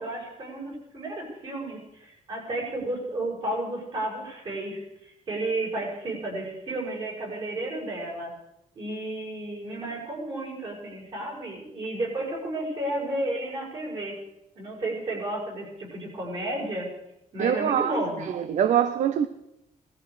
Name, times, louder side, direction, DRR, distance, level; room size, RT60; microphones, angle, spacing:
voice 1, 0.0-8.3 8.7-14.2 14.6-16.9 17.3-18.2, right 1 dB, 35° right, 6.1 m, -32 dB
voice 2, 17.4-18.0 18.3-19.3, right 9 dB, 55° right, 0.7 m, -23 dB
18.0 x 14.0 x 5.0 m
cardioid pair, 165°, 15 cm